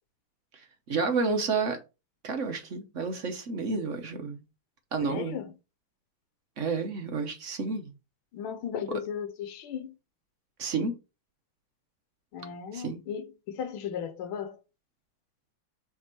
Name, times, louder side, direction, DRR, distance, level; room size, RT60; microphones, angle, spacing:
voice 1, 0.9-1.8 2.2-4.4 4.9-5.4 6.6-7.9 10.6-11.0 12.7-13.0, right 4 dB, 50° right, 0.9 m, -30 dB
voice 2, 5.0-5.5 8.3-9.9 12.3-14.6, left 8 dB, 80° left, 1.7 m, -36 dB
7.2 x 3.6 x 4.4 m
omnidirectional pair, 2.3 m